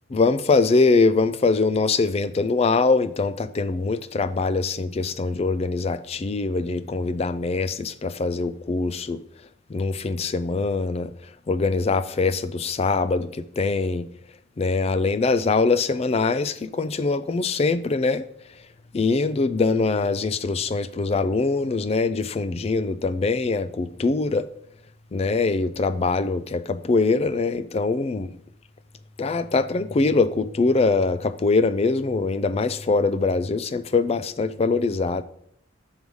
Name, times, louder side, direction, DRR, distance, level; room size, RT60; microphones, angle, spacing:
voice 1, 0.1-9.2 9.7-11.1 11.5-14.1 14.6-18.2 18.9-24.5 25.1-28.3 29.2-35.2, left 3 dB, 30° left, 0.3 m, -23 dB
6.4 x 5.4 x 4.8 m
head